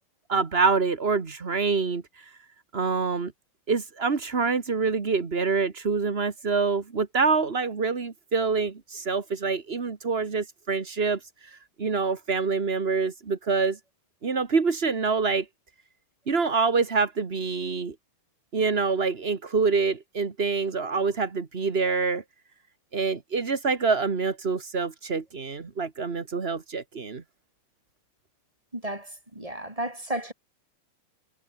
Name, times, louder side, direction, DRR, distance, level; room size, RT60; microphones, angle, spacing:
voice 1, 0.3-2.0 2.7-3.3 3.7-11.2 11.8-13.8 14.2-15.4 16.3-17.9 18.5-22.2 22.9-27.2, right 4 dB, 35° right, 0.9 m, -26 dB
voice 2, 28.7-30.3, right 1 dB, 10° right, 5.8 m, -33 dB
omnidirectional pair, 3.7 m